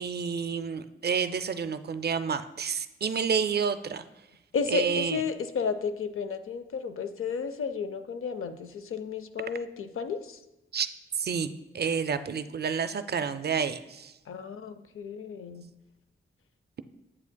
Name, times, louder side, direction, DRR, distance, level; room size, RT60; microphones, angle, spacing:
voice 1, 0.0-4.1 4.7-5.2 10.7-10.9 11.1-14.1, right 6 dB, 50° right, 12 dB, 0.4 m, -29 dB
voice 2, 4.5-10.4 14.3-15.7, left 6 dB, 90° left, 10 dB, 0.5 m, -32 dB
8.5 x 7.1 x 2.2 m, 1.0 s
cardioid pair, 55°, 21 cm